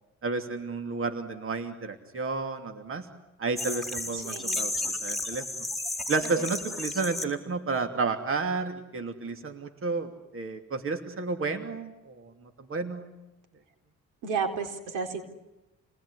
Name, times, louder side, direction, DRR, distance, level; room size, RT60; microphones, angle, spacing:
voice 1, 0.2-3.1 3.4-4.7 5.0-5.4 6.1-12.3 12.7-13.1, right 4 dB, 45° right, 7 dB, 2.9 m, -31 dB
sound 1, 3.6-7.2, left 2 dB, ahead, 4.1 m, -33 dB
voice 2, 4.2-4.6 6.4-6.5 14.2-15.2, right 5 dB, 85° right, 5 dB, 4.2 m, -32 dB
29.5 x 20.0 x 9.9 m, 0.98 s
cardioid pair, 90°, 30 cm